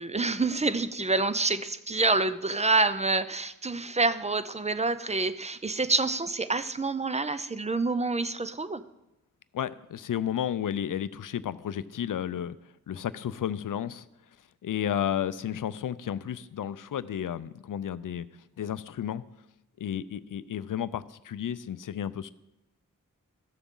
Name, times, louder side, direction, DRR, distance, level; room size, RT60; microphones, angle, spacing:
voice 1, 0.0-8.8, right 3 dB, 20° right, 13 dB, 0.5 m, -27 dB
voice 2, 9.5-12.6 12.9-14.1 14.6-18.3 18.6-19.2 19.8-22.3, left 9 dB, 75° left, 17 dB, 0.5 m, -32 dB
13.0 x 7.0 x 3.8 m, 0.93 s
cardioid pair, 50°, 32 cm